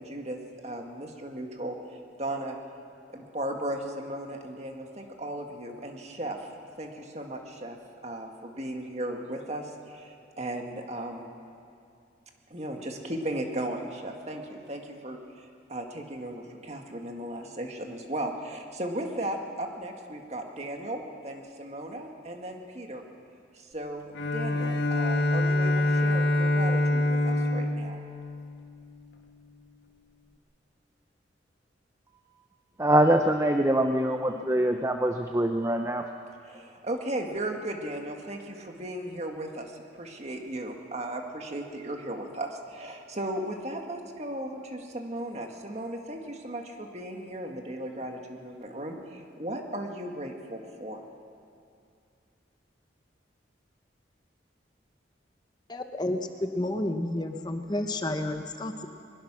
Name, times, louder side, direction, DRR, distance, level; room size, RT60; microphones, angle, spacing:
voice 1, 0.0-1.8 2.2-2.6 3.1-6.5 6.8-7.8 8.0-11.3 12.5-23.0 23.5-28.0 36.4-51.0, right 1 dB, 35° right, 2 dB, 1.9 m, -36 dB
Bowed string instrument, 24.1-29.2, left 1 dB, 75° left, 1.2 m, -26 dB
voice 2, 32.8-36.0, right 1 dB, 15° right, 5 dB, 0.7 m, -24 dB
voice 3, 55.7-58.9, left 1 dB, 20° left, 6 dB, 0.9 m, -31 dB
22.0 x 21.5 x 6.2 m, 2.4 s
head